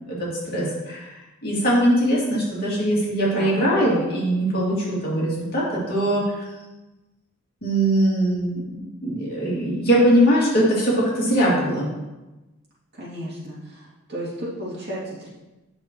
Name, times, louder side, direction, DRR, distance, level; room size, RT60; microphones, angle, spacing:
voice 1, 0.0-1.1 1.4-6.2 7.6-11.9, right 1 dB, 45° left, -6 dB, 2.4 m, -21 dB
voice 2, 3.3-3.6 12.9-15.3, equal, 50° right, -8 dB, 2.7 m, -33 dB
9.3 x 6.1 x 3.0 m, 1.1 s
head